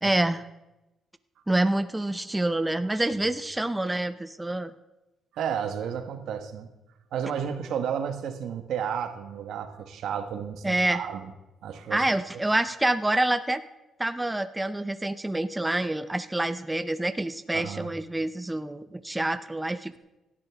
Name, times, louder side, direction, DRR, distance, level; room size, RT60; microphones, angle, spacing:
voice 1, 0.0-0.4 1.5-4.7 10.6-11.0 11.9-13.6 14.0-20.0, right 1 dB, 10° right, 12 dB, 0.6 m, -27 dB
voice 2, 5.3-6.7 7.1-11.3 11.6-12.0 17.5-17.9, right 8 dB, 75° right, 8 dB, 1.2 m, -32 dB
17.5 x 12.0 x 3.5 m, 0.98 s
cardioid pair, 90°, 0 cm